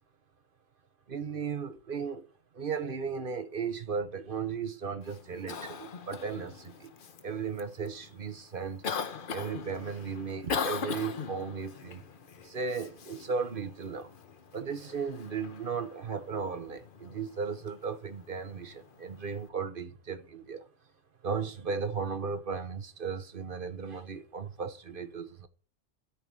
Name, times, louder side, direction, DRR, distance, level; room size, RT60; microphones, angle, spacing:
voice 1, 1.1-2.3 2.5-6.9 7.2-8.8 9.3-12.0 12.4-14.1 14.5-20.7 21.2-25.5, right 5 dB, 45° right, 1.2 m, -36 dB
Cough, 5.0-19.5, left 6 dB, 45° left, 0.9 m, -41 dB
13.0 x 4.8 x 8.8 m
omnidirectional pair, 1.3 m